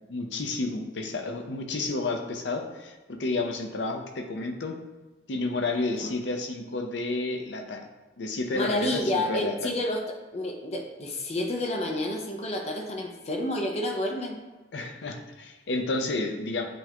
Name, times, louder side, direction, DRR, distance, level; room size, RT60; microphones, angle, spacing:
voice 1, 0.1-4.8 5.3-7.9 8.2-9.7 14.7-16.6, left 2 dB, 80° left, 4 dB, 0.6 m, -31 dB
voice 2, 8.5-10.0 10.3-14.4, left 1 dB, 35° left, 2 dB, 0.5 m, -29 dB
7.7 x 2.9 x 2.2 m, 1.2 s
head